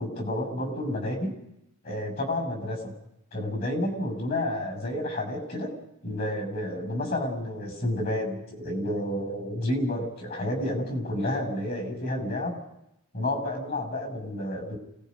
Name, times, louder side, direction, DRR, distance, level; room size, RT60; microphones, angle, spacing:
voice 1, 0.0-1.3 1.8-2.9 3.3-5.7 6.0-12.6 13.1-14.8, left 1 dB, 45° left, 4 dB, 6.8 m, -30 dB
29.0 x 18.5 x 5.4 m, 0.83 s
head